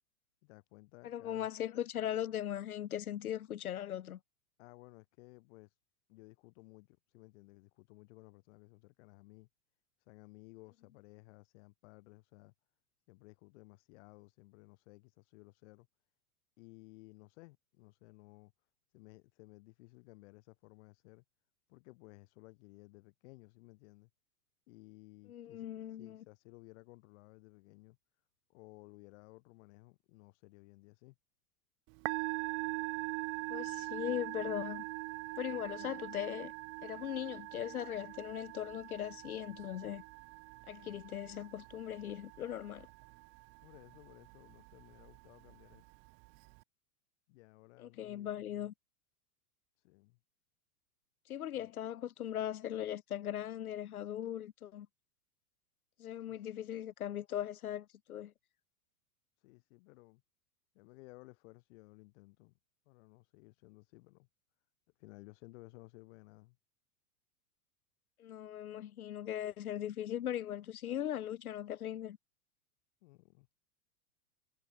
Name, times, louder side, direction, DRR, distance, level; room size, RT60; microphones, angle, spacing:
voice 1, 0.4-1.5 4.6-5.8 6.1-9.5 10.0-12.5 13.1-15.9 16.6-18.5 18.9-21.2 21.7-24.1 24.7-28.0 28.5-31.2 43.6-45.9 47.3-48.7 49.8-50.2 51.5-51.7 56.2-56.5 59.4-60.2 60.7-62.5 62.9-64.3 65.0-66.6 73.0-73.6, left 23 dB, 55° left, 2.0 m, -57 dB
voice 2, 1.0-4.2 25.3-26.2 33.5-34.8 35.4-36.5 36.8-40.0 40.7-42.9 47.8-48.7 51.3-54.9 56.0-58.3 68.2-72.2, left 11 dB, 85° left, 0.7 m, -39 dB
Musical instrument, 31.9-46.6, right 36 dB, 40° right, 0.6 m, -43 dB
hypercardioid pair, 100°, 42 cm